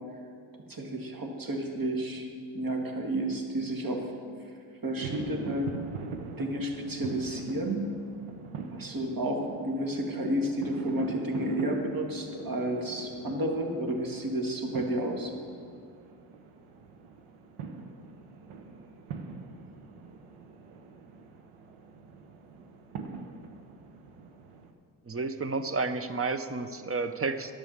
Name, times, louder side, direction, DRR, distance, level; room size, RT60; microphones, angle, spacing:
voice 1, 0.7-2.3 2.5-4.3 4.8-5.7 6.4-7.8 8.7-15.3, right 1 dB, 45° right, 2 dB, 2.0 m, -31 dB
sound 1, 5.0-24.7, right 5 dB, 90° right, 1.0 m, -43 dB
voice 2, 25.1-27.5, right 4 dB, 30° right, 10 dB, 0.8 m, -31 dB
10.5 x 7.0 x 7.2 m, 2.2 s
cardioid pair, 60°, 49 cm